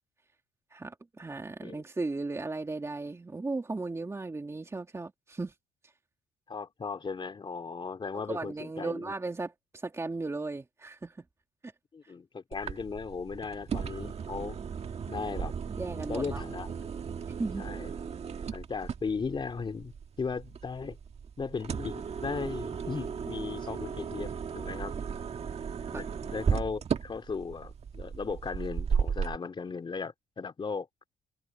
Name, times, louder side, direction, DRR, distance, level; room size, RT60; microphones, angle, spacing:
voice 1, 0.7-5.5 8.3-11.2 11.6-11.7 15.8-16.4 17.4-17.6 25.9-26.1, right 3 dB, 15° right, 2.7 m, -36 dB
voice 2, 6.5-9.1 11.9-14.6 15.1-16.9 17.6-17.9 18.5-21.0 21.4-24.9 25.9-30.9, left 5 dB, 30° left, 3.2 m, -37 dB
sound 1, 12.5-29.4, right 6 dB, 40° right, 1.7 m, -35 dB
cardioid pair, 110°, 17 cm